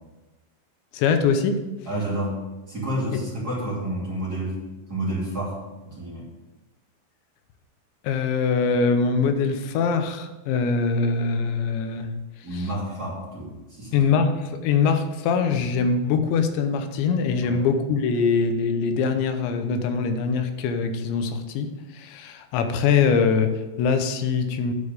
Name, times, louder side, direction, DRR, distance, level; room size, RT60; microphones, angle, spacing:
voice 1, 0.9-1.7 3.1-3.2 8.0-12.1 12.5-12.7 13.9-24.7, left 5 dB, 85° left, 7 dB, 3.1 m, -23 dB
voice 2, 1.8-2.4 2.7-4.6 4.9-5.6 5.9-6.3 12.4-14.0 17.4-17.6, right 1 dB, 25° right, -7 dB, 2.6 m, -29 dB
10.5 x 5.3 x 6.7 m, 1.1 s
omnidirectional pair, 5.0 m